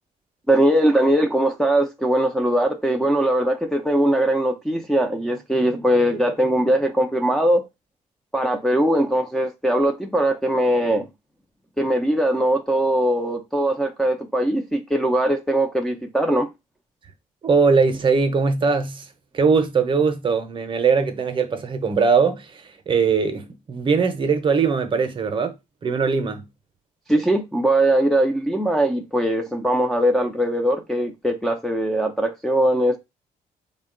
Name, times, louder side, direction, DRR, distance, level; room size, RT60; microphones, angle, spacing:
voice 1, 0.5-7.6 8.3-11.1 11.8-16.5 27.1-33.0, right 1 dB, 5° left, 0.4 m, -20 dB
voice 2, 17.4-19.0 19.3-25.5 25.8-26.5, right 5 dB, 35° right, 0.7 m, -20 dB
3.7 x 2.2 x 3.7 m
cardioid pair, 125°, 14 cm